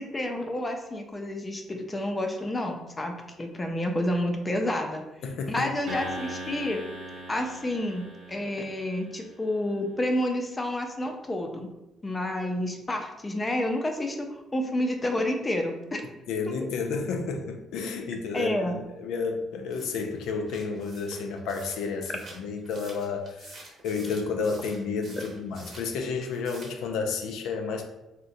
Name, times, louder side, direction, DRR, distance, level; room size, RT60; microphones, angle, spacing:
voice 1, 0.0-5.0 5.5-6.8 7.3-11.7 12.0-16.0 18.3-18.8, left 1 dB, 15° left, 3 dB, 0.4 m, -29 dB
voice 2, 5.2-6.0 16.3-27.8, left 4 dB, 90° left, 4 dB, 0.4 m, -31 dB
sound 1, 5.9-9.3, right 1 dB, 75° right, 0.6 m, -40 dB
sound 2, 19.7-25.9 26.2-26.9, right 2 dB, 40° right, 0.7 m, -49 dB
3.7 x 2.1 x 2.6 m, 0.96 s
cardioid pair, 135°, 0 cm